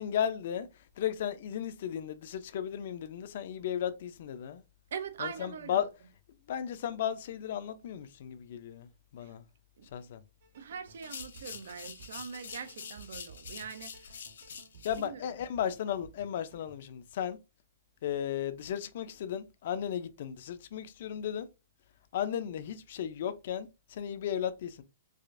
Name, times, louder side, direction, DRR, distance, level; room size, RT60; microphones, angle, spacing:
voice 1, 0.0-4.6 5.2-5.9 6.5-9.4 9.9-10.2 14.8-17.4 18.0-21.5 22.1-24.8, left 9 dB, 50° left, 0.5 m, -35 dB
voice 2, 4.9-5.9 9.2-9.3 9.8-10.1 10.5-14.2 14.9-15.3, right 7 dB, 70° right, 0.5 m, -42 dB
sound 1, 10.4-16.8, right 5 dB, 50° right, 1.1 m, -56 dB
sound 2, 10.9-15.1, left 7 dB, 90° left, 0.8 m, -46 dB
4.8 x 2.5 x 2.5 m
hypercardioid pair, 175°, 0 cm